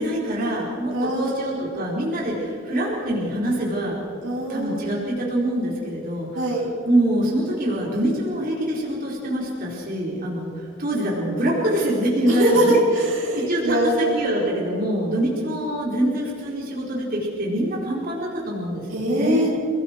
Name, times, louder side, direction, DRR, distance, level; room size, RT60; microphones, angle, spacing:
voice 1, 0.0-4.0 4.5-6.3 6.8-12.8 13.3-19.5, right 1 dB, 45° right, -4 dB, 4.8 m, -25 dB
voice 2, 0.9-1.6 4.2-5.0 6.3-6.7 12.3-14.7 18.9-19.5, right 1 dB, 80° right, -4 dB, 5.6 m, -23 dB
30.0 x 19.5 x 4.7 m, 2.4 s
head